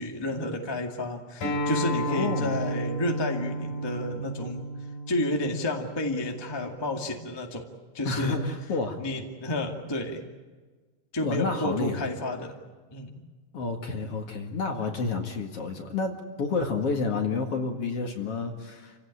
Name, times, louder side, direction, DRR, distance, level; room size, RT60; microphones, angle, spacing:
voice 1, 0.0-4.6 5.1-7.7 7.9-8.4 9.0-10.2 11.1-12.5 12.9-13.2, left 1 dB, 10° left, 2 dB, 1.4 m, -31 dB
Acoustic guitar, 1.4-6.6, right 1 dB, 75° left, 6.6 m, -32 dB
voice 2, 2.1-2.6 8.0-9.0 11.2-12.1 13.5-19.0, left 4 dB, 50° left, 4 dB, 2.5 m, -30 dB
28.0 x 16.5 x 9.8 m, 1.4 s
omnidirectional pair, 3.9 m